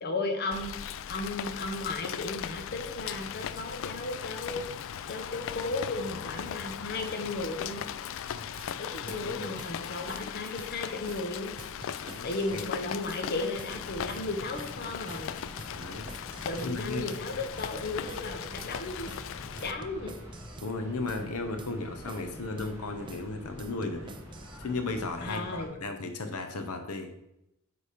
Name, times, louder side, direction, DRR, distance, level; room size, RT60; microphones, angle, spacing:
voice 1, 0.0-0.7 1.1-4.6 5.1-7.9 8.8-11.6 12.2-15.4 16.4-19.1 19.6-20.2 25.2-25.7, left 2 dB, 45° left, 4 dB, 0.7 m, -35 dB
Rain, 0.5-19.7, left 8 dB, 65° left, 0.3 m, -38 dB
voice 2, 8.3-9.5 12.0-12.7 15.7-16.1 16.6-17.1 20.6-24.2 24.6-27.1, left 3 dB, 85° left, 6 dB, 0.8 m, -36 dB
sound 1, 8.6-8.7 9.1-9.3 9.6-9.7 10.1-10.3 10.6-10.7 11.1-11.3 11.6-12.7 13.1-13.3 13.6-13.7 14.1-14.3 14.6-14.7 15.1-15.3 15.6-16.7 17.1-17.3 17.6-17.7 18.1-18.3 18.6-18.7 19.1-19.3 19.6-20.7 21.1-21.3 21.6-21.7 22.1-22.3 22.6-22.7 23.1-23.3 23.6-24.6, right 3 dB, 20° right, 0.4 m, -48 dB
sound 2, 13.7-25.7, equal, 30° left, 2.2 m, -46 dB
8.5 x 3.4 x 5.0 m, 0.86 s
head